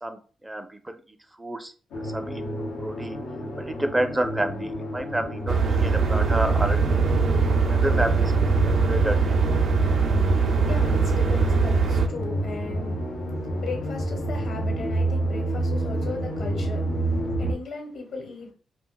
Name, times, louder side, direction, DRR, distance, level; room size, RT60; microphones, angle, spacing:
voice 1, 0.0-1.0 1.4-1.7 2.0-2.4 2.8-3.2 3.6-7.0 7.6-9.4, right 1 dB, 15° right, 0.5 m, -29 dB
sound 1, 1.9-17.5, equal, 90° left, 0.8 m, -29 dB
sound 2, 5.5-12.1, right 5 dB, 65° right, 0.4 m, -22 dB
voice 2, 10.6-18.5, left 3 dB, 60° left, 1.1 m, -37 dB
2.4 x 2.1 x 3.8 m
cardioid pair, 85°, 0 cm